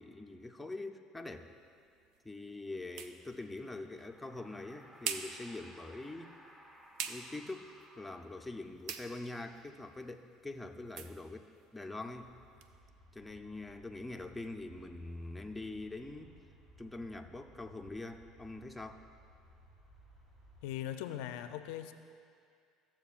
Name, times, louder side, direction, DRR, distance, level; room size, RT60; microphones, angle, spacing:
voice 1, 0.0-1.5 2.2-6.3 7.1-12.3 13.1-16.4 16.8-19.0, left 2 dB, 5° left, 4 dB, 0.5 m, -44 dB
sound 1, 1.2-12.7, right 7 dB, 65° right, 0.5 m, -48 dB
sound 2, 3.8-8.9, equal, 15° right, 0.9 m, -59 dB
sound 3, 12.1-20.8, right 1 dB, 35° right, 2.3 m, -61 dB
voice 2, 20.6-21.9, left 11 dB, 80° left, 9 dB, 0.4 m, -40 dB
14.5 x 7.4 x 2.4 m, 2.3 s
supercardioid pair, 95°, 0 cm